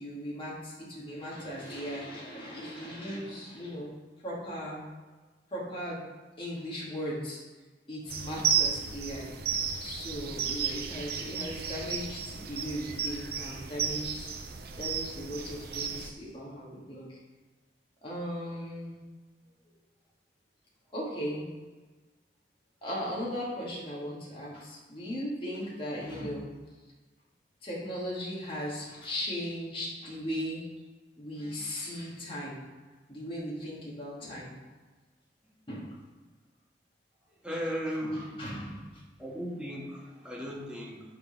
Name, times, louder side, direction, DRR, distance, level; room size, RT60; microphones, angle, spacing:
voice 1, 0.0-3.9 4.2-4.8 5.5-6.0 6.4-7.4 7.9-9.3 9.8-14.3 14.8-17.2 18.0-19.0 20.9-21.5 22.8-26.5 27.6-30.7 31.2-32.6 33.1-34.6 35.7-35.9 38.0-39.0, equal, 30° left, -6 dB, 2.0 m, -37 dB
sound 1, 8.1-16.1, right 7 dB, 60° right, 0.7 m, -33 dB
voice 2, 37.4-38.4 39.2-41.0, equal, 5° right, -4 dB, 1.6 m, -36 dB
9.7 x 4.0 x 5.2 m, 1.3 s
head